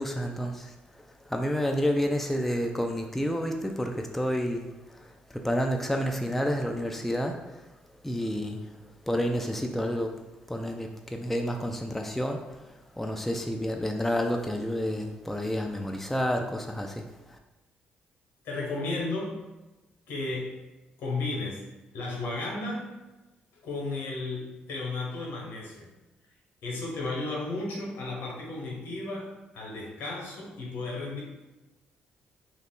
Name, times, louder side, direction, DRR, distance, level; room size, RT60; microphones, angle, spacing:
voice 1, 0.0-7.7 8.0-17.4, equal, 5° left, 3 dB, 0.3 m, -30 dB
voice 2, 18.4-19.4 20.1-20.6 21.0-21.6 21.9-22.9 23.6-25.9 26.6-31.2, left 2 dB, 75° left, -3 dB, 0.8 m, -34 dB
2.4 x 2.0 x 3.5 m, 1.1 s
supercardioid pair, 55°, 4 cm